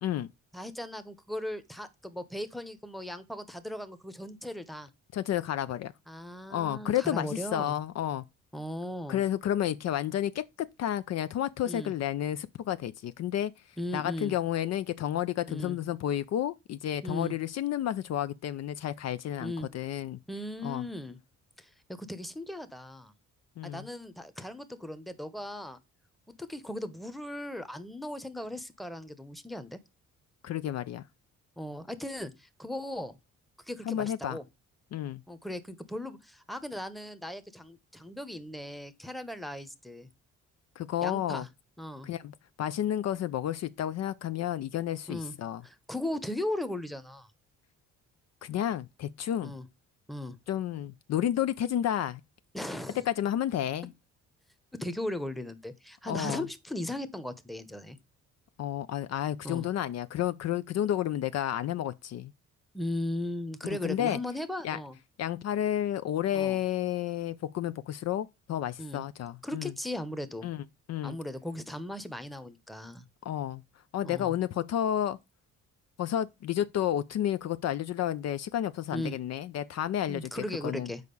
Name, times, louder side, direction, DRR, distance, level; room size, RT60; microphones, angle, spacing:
voice 1, 0.5-4.9 6.1-7.8 8.5-9.2 11.6-11.9 13.8-14.3 15.5-15.8 17.0-17.4 19.4-19.7 20.3-21.2 21.6-23.1 23.6-25.8 26.4-29.8 31.6-33.1 33.7-34.4 35.3-40.1 41.0-41.5 41.8-42.1 45.1-45.3 45.6-47.3 49.4-49.6 50.1-50.4 52.5-53.0 54.8-58.0 59.4-59.7 62.7-65.0 66.3-66.6 68.8-69.0 69.4-70.5 71.0-73.0 74.0-74.3 78.9-79.2 80.1-81.0, left 1 dB, ahead, 0.9 m, -37 dB
voice 2, 5.1-5.9 6.5-8.2 9.1-13.5 13.9-20.2 20.6-20.8 23.6-23.9 30.4-31.0 33.9-34.4 34.9-35.2 40.8-41.4 42.0-45.6 48.4-49.5 50.5-52.2 53.1-53.9 56.1-56.4 58.6-62.3 63.8-64.2 64.6-64.8 65.2-69.7 70.4-70.6 70.9-71.2 73.2-73.6 73.9-75.2 76.0-80.9, left 11 dB, 60° left, 0.5 m, -31 dB
6.6 x 4.8 x 5.3 m
cardioid pair, 90°, 30 cm